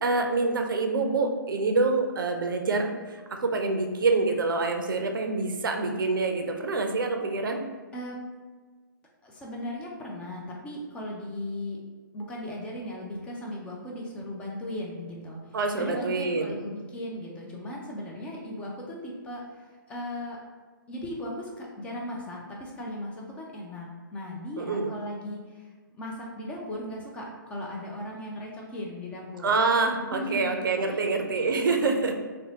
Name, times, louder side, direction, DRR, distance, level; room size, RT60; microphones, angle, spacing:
voice 1, 0.0-7.6 15.5-16.6 24.6-24.9 29.4-32.1, right 3 dB, 70° right, 4 dB, 0.4 m, -26 dB
voice 2, 9.2-11.8 12.1-20.4 20.9-29.6 30.1-30.5 30.9-31.0, left 1 dB, 10° left, -2 dB, 0.3 m, -37 dB
2.6 x 2.0 x 2.8 m, 1.4 s
figure-of-eight pair, 130°, 11 cm